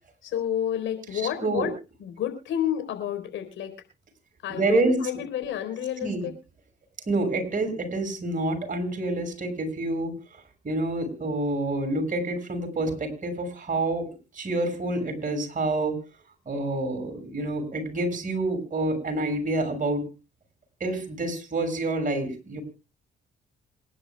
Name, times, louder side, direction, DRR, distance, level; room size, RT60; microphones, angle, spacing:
voice 1, 0.2-1.7 2.0-3.8 4.4-6.4, left 10 dB, 75° left, 8 dB, 4.2 m, -30 dB
voice 2, 4.5-5.0 6.0-6.3 7.1-10.1 10.6-14.1 14.3-16.0 16.5-20.0 20.8-22.6, right 2 dB, 40° right, 6 dB, 6.3 m, -27 dB
27.0 x 11.0 x 2.3 m, 0.31 s
supercardioid pair, 55°, 20 cm